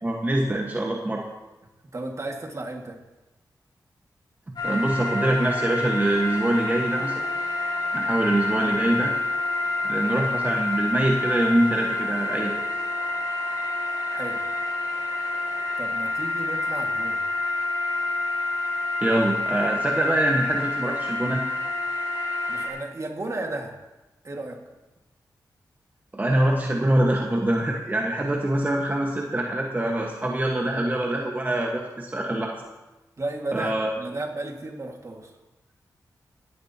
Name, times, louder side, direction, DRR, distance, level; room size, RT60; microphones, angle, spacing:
voice 1, 0.0-1.3 4.6-7.3 7.9-9.1 9.8-12.5 19.0-21.4 26.1-32.5 33.5-33.9, right 1 dB, 25° right, -1 dB, 1.4 m, -24 dB
voice 2, 1.9-3.0 14.1-14.4 15.8-17.2 22.5-23.7 24.2-24.6 33.2-35.3, right 2 dB, 45° right, 2 dB, 2.0 m, -33 dB
sound 1, 4.6-22.7, left 2 dB, 85° left, 3.5 m, -28 dB
19.0 x 10.5 x 2.9 m, 1.1 s
cardioid pair, 60°, 7 cm